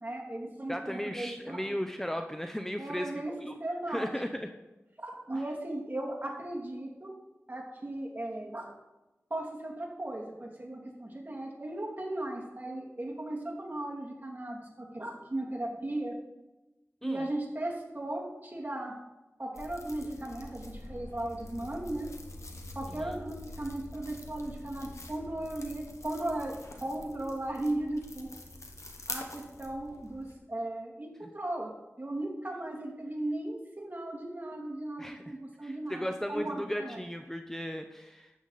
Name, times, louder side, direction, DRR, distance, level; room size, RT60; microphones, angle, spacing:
voice 1, 0.0-1.8 2.8-3.3 3.6-4.1 5.0-7.1 7.5-8.7 9.3-16.1 17.0-18.9 19.4-22.1 22.7-28.3 29.1-31.7 32.0-37.0, right 1 dB, 35° right, -2 dB, 2.7 m, -37 dB
voice 2, 0.7-3.5 3.9-4.5 5.3-5.4 17.0-17.3 22.9-23.2 35.0-35.2 35.6-38.3, equal, 10° left, 5 dB, 0.7 m, -36 dB
sound 1, 19.5-30.3, left 2 dB, 85° left, 1.3 m, -45 dB
12.5 x 8.1 x 4.1 m, 1.0 s
wide cardioid pair, 55°, 5 cm